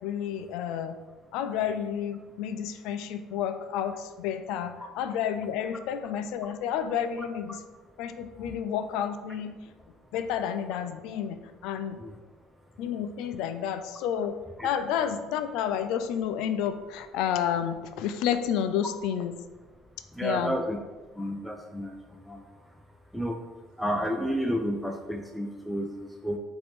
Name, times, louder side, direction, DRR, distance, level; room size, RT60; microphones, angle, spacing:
voice 1, 0.0-1.0 1.3-7.6 8.0-9.5 10.1-12.0 12.8-14.4 14.6-19.3 20.2-20.6, left 9 dB, 75° left, 9 dB, 0.3 m, -30 dB
voice 2, 20.1-20.8 21.2-21.9 22.3-22.4 23.1-23.4 23.8-26.4, equal, ahead, 3 dB, 0.3 m, -31 dB
5.7 x 2.7 x 3.4 m, 1.3 s
cardioid pair, 115°, 0 cm